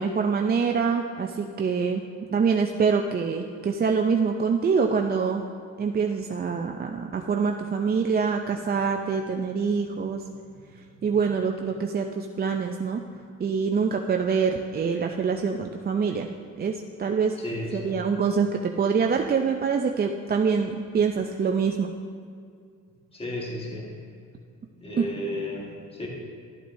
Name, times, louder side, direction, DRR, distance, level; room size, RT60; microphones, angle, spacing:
voice 1, 0.0-5.5 5.8-10.2 11.0-13.0 13.4-16.3 16.6-17.4 17.7-21.9 25.0-25.1, right 5 dB, 30° right, 3 dB, 0.5 m, -25 dB
voice 2, 17.4-18.0 23.1-23.9 24.8-26.1, left 1 dB, 20° left, -2 dB, 1.6 m, -33 dB
12.5 x 8.1 x 2.7 m, 2.3 s
cardioid pair, 90°, 30 cm